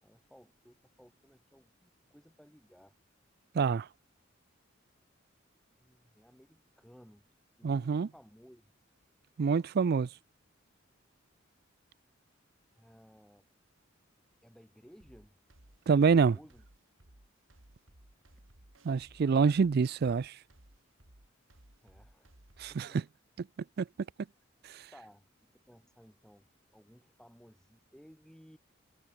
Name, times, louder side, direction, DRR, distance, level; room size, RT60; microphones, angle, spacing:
voice 1, 0.0-2.9 5.8-7.3 7.6-8.7 12.7-13.5 14.4-15.4 15.9-16.6 21.8-22.3 22.7-23.0 24.9-25.3 25.7-28.6, equal, 5° left, 5.3 m, -58 dB
voice 2, 3.5-3.9 7.6-8.1 9.4-10.1 15.9-16.4 18.8-20.4 22.6-23.0 23.8-23.9 24.7-24.8, right 5 dB, 50° right, 0.4 m, -26 dB
sound 1, 15.0-23.0, right 1 dB, 90° right, 3.3 m, -60 dB
head